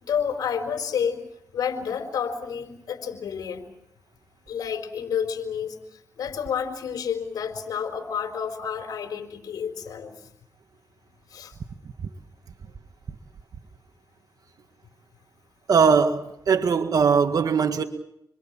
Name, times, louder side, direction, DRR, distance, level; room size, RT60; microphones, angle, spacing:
voice 1, 0.0-1.2 1.5-3.7 4.5-10.1 11.3-11.5, left 7 dB, 85° left, 4.3 m, -30 dB
voice 2, 15.7-17.8, right 6 dB, 70° right, 1.8 m, -20 dB
29.0 x 23.0 x 7.5 m
cardioid pair, 55°, 6 cm